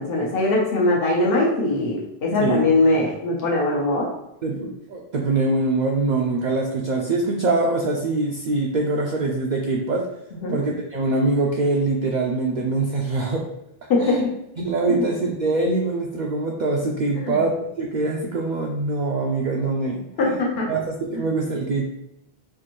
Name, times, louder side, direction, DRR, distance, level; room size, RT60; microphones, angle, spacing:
voice 1, 0.0-4.1 10.4-10.6 13.9-14.2 14.9-15.0 17.2-17.4 20.2-20.7, left 2 dB, 65° left, -3 dB, 1.0 m, -21 dB
voice 2, 2.4-2.7 4.4-10.1 10.5-13.5 14.0-14.3 14.6-20.4 20.7-21.9, right 3 dB, 55° right, -1 dB, 0.5 m, -23 dB
4.5 x 2.5 x 2.9 m, 0.84 s
omnidirectional pair, 1.0 m